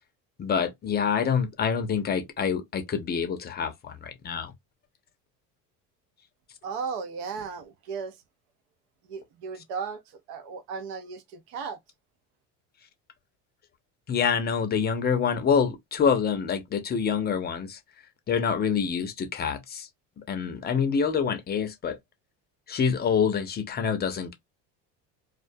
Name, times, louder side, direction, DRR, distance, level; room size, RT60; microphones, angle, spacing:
voice 1, 0.4-4.5 14.1-17.8 18.3-19.9 20.3-22.0 22.7-24.3, left 6 dB, 30° left, 0.5 m, -26 dB
voice 2, 6.6-8.1 9.1-10.0 10.3-11.8, right 5 dB, 70° right, 0.6 m, -35 dB
2.3 x 2.1 x 2.6 m
cardioid pair, 125°, 35 cm